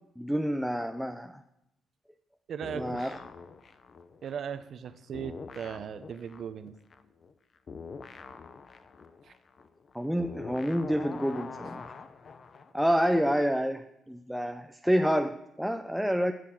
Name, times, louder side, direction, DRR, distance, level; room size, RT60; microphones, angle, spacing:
voice 1, 0.2-1.4 2.8-3.2 9.9-11.9 12.7-16.3, equal, ahead, 6 dB, 0.5 m, -28 dB
voice 2, 2.5-3.1 4.2-6.8 9.2-9.3, right 7 dB, 60° right, 11 dB, 0.8 m, -38 dB
sound 1, 2.6-4.9 5.1-12.7, left 5 dB, 45° left, 0.7 m, -45 dB
11.0 x 6.8 x 7.4 m, 0.88 s
cardioid pair, 90°, 0 cm